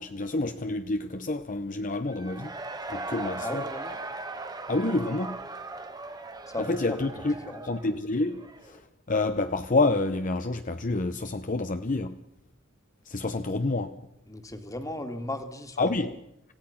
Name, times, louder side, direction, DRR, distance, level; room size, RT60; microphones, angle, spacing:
voice 1, 0.0-2.5 2.9-3.6 4.7-5.4 6.7-7.3 7.7-8.8 9.1-12.2 13.1-14.0 15.8-16.1, left 2 dB, 40° left, 0.8 m, -28 dB
Cheering / Crowd, 2.0-8.8, right 3 dB, 20° right, 1.4 m, -39 dB
voice 2, 3.4-4.0 6.5-7.6 14.3-16.0, left 1 dB, 15° left, 2.1 m, -36 dB
26.5 x 17.0 x 5.8 m
head